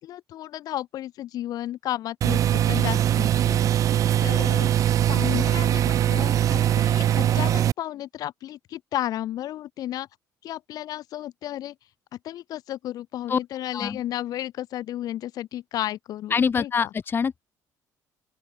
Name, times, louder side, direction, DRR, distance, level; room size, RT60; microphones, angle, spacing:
voice 1, 0.0-3.6 4.2-4.7 5.1-10.1 10.4-11.8 12.2-16.9, left 13 dB, 65° left, 1.8 m, -33 dB
sound 1, 2.2-7.7, right 11 dB, 55° right, 0.7 m, -21 dB
voice 2, 16.3-17.4, left 6 dB, 35° left, 1.0 m, -24 dB
open air
cardioid pair, 115°, 7 cm